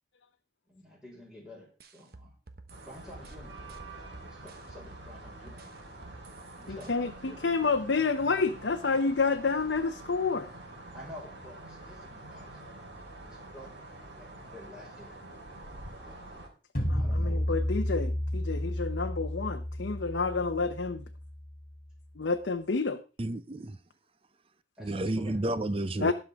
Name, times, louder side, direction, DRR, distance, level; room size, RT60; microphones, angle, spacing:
voice 1, 0.7-2.3 2.8-3.8 4.2-5.8 6.6-7.5 10.9-12.6 13.2-13.8 14.2-15.2 16.0-16.2 16.9-17.5 24.8-25.4, left 1 dB, 5° right, 4.9 m, -50 dB
sound 1, 1.8-5.1 5.5-6.9, right 2 dB, 55° right, 1.2 m, -51 dB
sound 2, 2.7-16.5, right 2 dB, 75° right, 3.9 m, -47 dB
voice 2, 6.7-10.5 16.9-21.0 22.2-23.0 26.0-26.1, left 4 dB, 70° left, 0.7 m, -29 dB
sound 3, 16.7-21.8, left 1 dB, 45° left, 2.8 m, -32 dB
voice 3, 23.2-23.8 24.8-26.1, right 1 dB, 30° right, 0.6 m, -31 dB
19.0 x 6.5 x 3.5 m
head